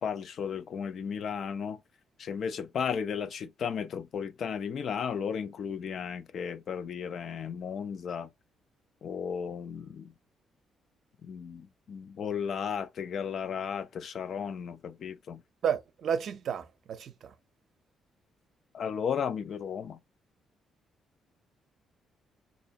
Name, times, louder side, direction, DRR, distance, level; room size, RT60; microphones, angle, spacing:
voice 1, 0.0-1.8 2.2-8.3 9.0-10.1 11.2-15.4 18.7-20.0, left 7 dB, 60° left, 0.5 m, -34 dB
voice 2, 15.6-17.3, right 8 dB, 65° right, 0.6 m, -32 dB
4.3 x 2.7 x 2.8 m
cardioid pair, 90°, 0 cm